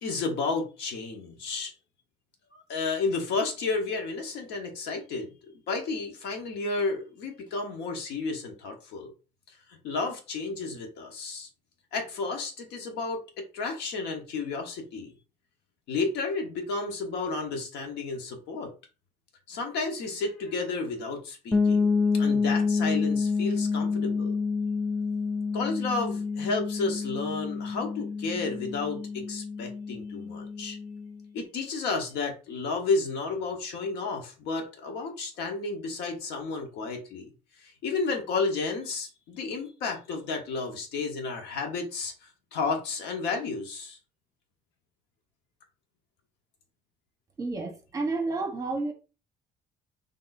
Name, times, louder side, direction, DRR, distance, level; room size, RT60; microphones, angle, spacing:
voice 1, 0.0-1.7 2.5-9.1 9.7-11.5 11.9-15.1 15.9-18.7 19.5-24.4 25.5-30.8 31.3-37.3 37.6-44.0, left 3 dB, 85° left, 1.2 m, -32 dB
sound 1, 21.5-31.2, left 4 dB, 5° left, 0.8 m, -28 dB
voice 2, 47.4-48.9, right 3 dB, 20° right, 1.2 m, -30 dB
4.0 x 3.6 x 2.6 m
cardioid pair, 110°, 17 cm